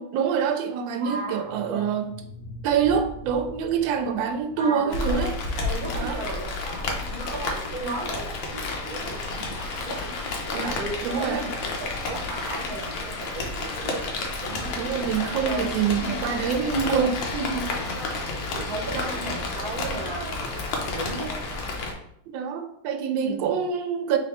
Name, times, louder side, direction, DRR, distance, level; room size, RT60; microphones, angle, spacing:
voice 1, 0.0-2.1 2.6-5.3 5.9-6.2 7.8-8.0 10.5-11.4 14.5-17.7 22.3-24.2, right 7 dB, 80° right, 6 dB, 1.3 m, -26 dB
sound 1, 1.0-6.2, left 2 dB, 60° left, 0.4 m, -44 dB
voice 2, 1.0-1.9 4.6-5.3 5.6-14.7 15.2-15.7 15.9-16.2 16.9-17.1 17.8-18.2 18.5-21.3 23.2-23.6, right 2 dB, 60° right, 0 dB, 1.2 m, -36 dB
Rain, 4.9-21.9, left 3 dB, 80° left, 1.5 m, -31 dB
3.7 x 3.2 x 4.1 m, 0.72 s
omnidirectional pair, 2.1 m